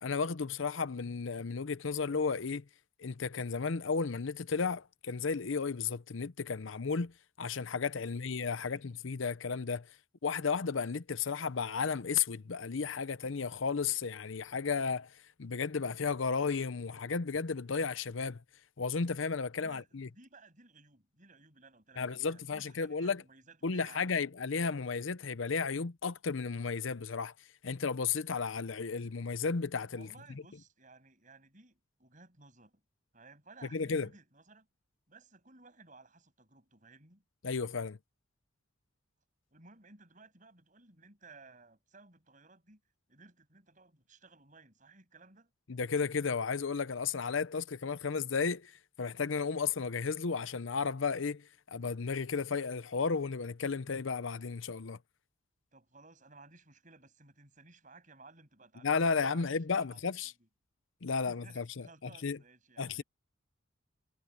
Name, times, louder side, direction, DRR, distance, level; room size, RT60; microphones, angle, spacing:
voice 1, 0.0-2.6 3.0-7.1 7.4-9.9 10.2-18.4 18.8-20.1 22.0-23.2 23.6-27.3 27.6-30.1 33.7-34.1 37.4-38.0 45.7-55.0 58.8-60.3 61.0-61.9 62.2-62.4 62.8-63.0, left 5 dB, 75° left, 0.7 m, -33 dB
voice 2, 8.0-8.9 19.6-24.2 29.9-32.8 33.1-34.7 35.1-37.2 39.5-42.8 43.1-45.5 55.7-60.5 61.3-63.0, right 3 dB, 40° right, 7.0 m, -58 dB
head